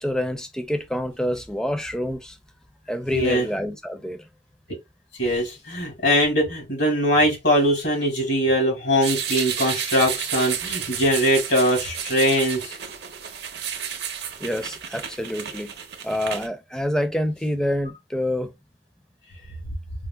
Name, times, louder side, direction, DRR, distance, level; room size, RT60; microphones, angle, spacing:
voice 1, 0.0-2.4 2.9-4.3 14.4-15.7 16.0-18.5, equal, 5° left, 0.4 m, -27 dB
voice 2, 3.1-3.5 5.2-12.7, equal, 75° left, 2.0 m, -21 dB
sound 1, 9.0-16.5, right 8 dB, 65° right, 0.6 m, -31 dB
4.7 x 2.1 x 2.2 m
head